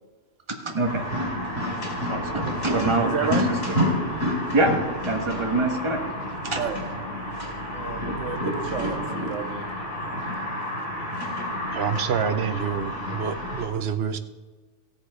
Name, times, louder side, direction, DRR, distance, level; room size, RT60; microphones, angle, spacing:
voice 1, 0.5-1.1 1.4-1.6 1.9-3.5 4.5-4.7 5.0-6.0 6.4-6.6, right 2 dB, 25° right, 2 dB, 1.4 m, -25 dB
sound 1, 0.8-13.7, left 1 dB, 70° left, 3.2 m, -29 dB
voice 2, 3.0-3.4 6.6-6.8 7.7-9.7, right 7 dB, 80° right, 9 dB, 1.2 m, -31 dB
voice 3, 11.7-14.2, right 7 dB, 60° right, 10 dB, 1.0 m, -27 dB
16.0 x 7.1 x 5.0 m, 1.3 s
omnidirectional pair, 1.3 m